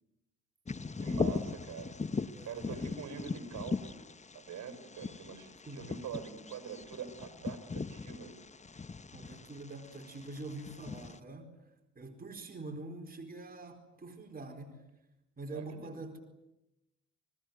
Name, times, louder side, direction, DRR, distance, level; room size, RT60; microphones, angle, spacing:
Bird vocalization bird call bird song, 0.7-11.2, left 4 dB, 25° left, 1.1 m, -39 dB
voice 1, 1.0-4.0 4.3-8.3 15.5-15.9, right 6 dB, 65° right, 9 dB, 5.5 m, -44 dB
voice 2, 2.3-2.9 5.6-5.9 9.1-11.5 12.0-14.8 15.4-16.2, right 2 dB, 30° right, 4 dB, 4.5 m, -45 dB
29.5 x 20.5 x 9.5 m, 0.92 s
cardioid pair, 90°, 30 cm